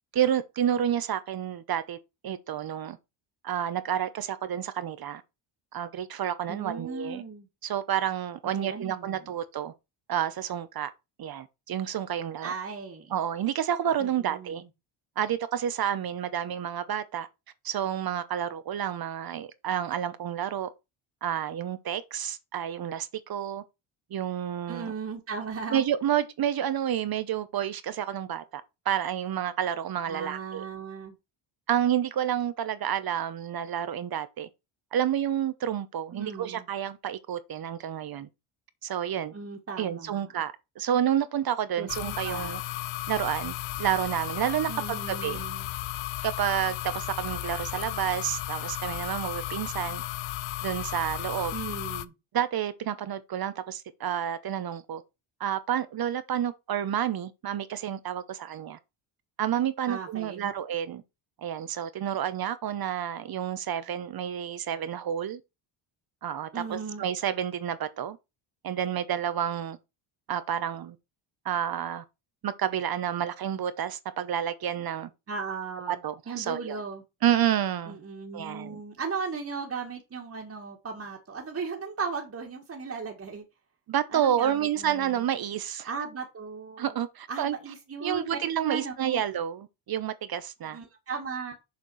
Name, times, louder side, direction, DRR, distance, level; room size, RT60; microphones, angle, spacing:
voice 1, 0.1-3.0 3.4-5.2 5.7-7.2 7.6-9.7 10.1-10.9 11.2-12.5 13.1-14.6 15.2-17.3 17.6-20.7 21.2-23.6 24.1-24.9 25.7-30.6 31.7-34.5 34.9-38.3 38.8-39.3 39.8-42.6 43.1-45.4 46.2-50.0 50.6-51.5 52.3-55.0 55.4-58.8 59.4-61.0 61.4-65.4 66.2-68.2 68.6-69.8 70.3-71.0 71.4-72.0 72.4-75.1 75.9-76.8 77.2-78.0 78.3-78.8 83.9-85.9 86.8-87.5 88.0-90.8, right 10 dB, 50° right, 1.0 m, -29 dB
voice 2, 6.5-7.5 8.5-9.2 12.4-13.2 14.0-14.7 24.7-25.8 30.1-31.2 36.1-36.7 39.3-40.3 41.8-42.6 44.7-45.7 51.5-52.1 59.9-60.5 66.5-67.0 75.3-77.0 77.9-83.5 84.1-85.2 85.8-87.0 87.3-88.3 88.6-89.2 90.7-91.5, right 5 dB, 30° right, 1.8 m, -37 dB
sound 1, 41.9-52.1, left 16 dB, 70° left, 0.7 m, -34 dB
7.0 x 4.5 x 6.2 m
cardioid pair, 105°, 48 cm